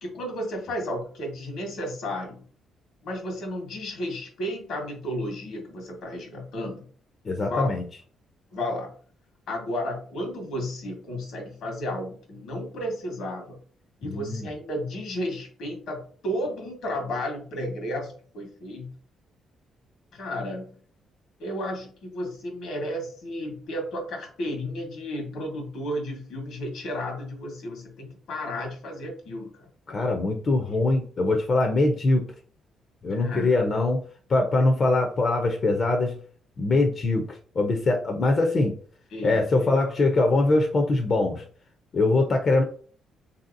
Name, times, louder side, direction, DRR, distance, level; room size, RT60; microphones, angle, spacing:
voice 1, 0.0-2.4 3.0-6.8 7.4-7.7 8.5-8.9 9.5-13.6 14.0-18.9 20.1-20.7 21.4-29.7 30.7-30.8 33.1-33.6 39.1-39.8, left 1 dB, 80° left, 2 dB, 1.2 m, -33 dB
voice 2, 7.2-7.8 14.0-14.5 29.9-32.3 33.0-34.0 34.3-36.1 36.6-38.7 39.2-41.4 41.9-42.6, left 2 dB, 45° left, 3 dB, 0.6 m, -23 dB
3.2 x 2.7 x 2.5 m, 0.43 s
cardioid pair, 90°, 0 cm